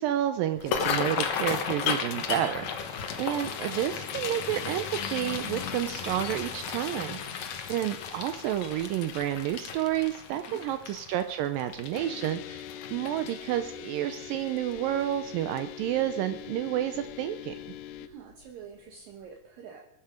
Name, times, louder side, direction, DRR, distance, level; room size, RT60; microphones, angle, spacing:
voice 1, 0.0-7.2 7.7-17.5, right 12 dB, 85° right, 9 dB, 2.0 m, -30 dB
sound 1, 0.5-13.7 14.1-14.4 14.7-15.2 15.6-15.7 17.0-17.1 17.5-17.6 18.1-18.2, left 7 dB, 65° left, 1.9 m, -34 dB
sound 2, 11.9-18.1, left 9 dB, 85° left, 1.9 m, -42 dB
voice 2, 18.0-19.9, right 7 dB, 65° right, 3 dB, 2.6 m, -47 dB
23.5 x 10.0 x 5.1 m, 0.80 s
omnidirectional pair, 4.8 m